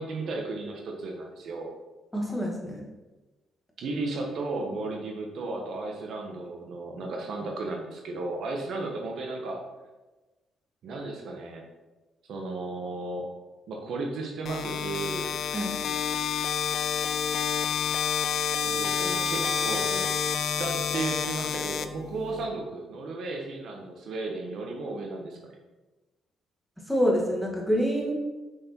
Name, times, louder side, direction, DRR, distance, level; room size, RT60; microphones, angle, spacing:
voice 1, 0.0-1.7 3.8-9.6 10.8-11.6 12.3-13.3 13.7-15.3 18.6-20.0 20.4-25.6, right 3 dB, 70° right, 1 dB, 1.2 m, -34 dB
voice 2, 2.1-2.8 15.5-15.8 26.9-28.1, equal, ahead, -2 dB, 1.9 m, -26 dB
sound 1, 14.5-22.5, left 7 dB, 65° left, 0.5 m, -29 dB
6.4 x 5.9 x 4.5 m, 1.2 s
cardioid pair, 90°, 0 cm